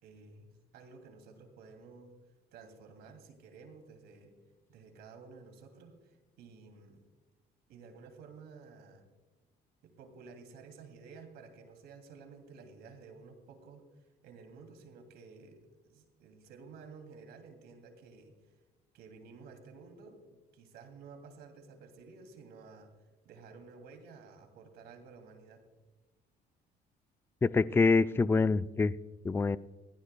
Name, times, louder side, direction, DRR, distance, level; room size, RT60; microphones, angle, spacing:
voice 1, 0.0-2.1 2.5-4.3 4.7-7.0 7.7-9.1 9.8-18.5 18.9-22.9 23.2-25.6, right 4 dB, 80° right, 5 dB, 2.8 m, -53 dB
voice 2, 27.4-28.9 29.2-29.6, left 4 dB, 15° left, 15 dB, 0.3 m, -25 dB
23.5 x 16.0 x 2.3 m, 1.2 s
cardioid pair, 110°, 17 cm